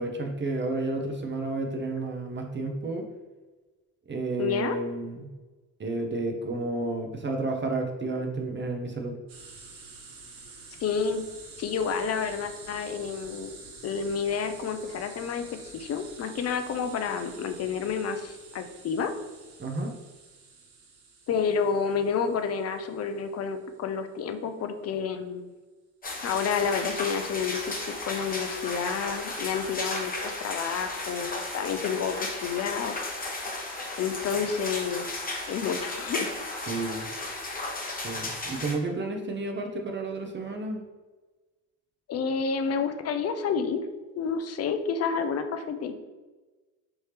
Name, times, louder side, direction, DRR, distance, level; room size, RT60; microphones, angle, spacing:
voice 1, 0.0-3.0 4.1-5.3 5.8-9.2 19.6-19.9 36.7-37.0 37.9-40.8, right 2 dB, 30° right, 3 dB, 0.6 m, -31 dB
voice 2, 4.4-4.8 10.8-11.2 11.6-13.5 13.8-19.1 21.3-25.5 26.2-27.8 28.0-32.9 34.0-36.3 42.1-43.8 44.1-45.9, left 6 dB, 40° left, 8 dB, 0.5 m, -29 dB
sound 1, 9.3-23.8, right 3 dB, 80° right, 0.9 m, -48 dB
sound 2, 26.0-38.7, left 2 dB, 20° left, 0.9 m, -34 dB
3.4 x 2.7 x 3.3 m, 1.2 s
hypercardioid pair, 65°, 40 cm